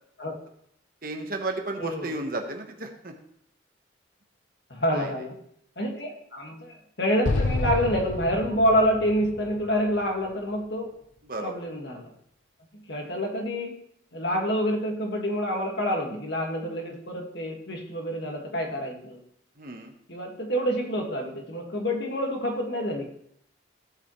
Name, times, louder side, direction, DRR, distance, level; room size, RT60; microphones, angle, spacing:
voice 1, 1.0-3.1 4.9-5.2 11.2-11.5 13.0-13.1 19.6-19.9, right 2 dB, 45° right, 3 dB, 1.2 m, -33 dB
voice 2, 1.8-2.1 4.7-5.4 5.8-10.9 11.4-12.1 12.7-13.7 14.1-19.2 20.1-23.1, equal, 55° left, 1 dB, 1.9 m, -27 dB
Explosion, 7.2-10.5, left 2 dB, 75° left, 0.9 m, -30 dB
16.0 x 5.7 x 3.2 m, 0.70 s
head